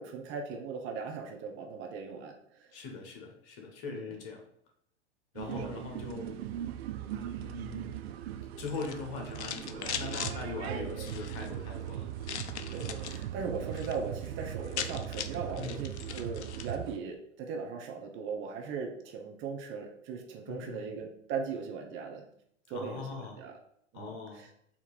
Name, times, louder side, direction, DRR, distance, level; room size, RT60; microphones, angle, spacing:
voice 1, 0.0-2.3 2.6-2.7 3.8-4.2 5.5-5.8 10.7-11.1 12.7-22.2 22.7-23.6 23.9-24.5, right 5 dB, 35° right, 3 dB, 0.8 m, -39 dB
voice 2, 2.7-4.4 5.3-6.4 7.1-7.9 8.6-12.1 15.6-15.8 20.5-20.9 22.7-23.4 23.9-24.5, left 5 dB, 45° left, 2 dB, 1.3 m, -41 dB
sound 1, 5.4-17.0, right 11 dB, 60° right, 0.5 m, -39 dB
sound 2, 8.6-10.4 11.0-11.5 12.2-13.2 13.6-14.0 14.3-14.4 14.5-16.7, left 8 dB, 70° left, 0.5 m, -40 dB
4.4 x 2.8 x 4.0 m, 0.70 s
figure-of-eight pair, 95°, 35 cm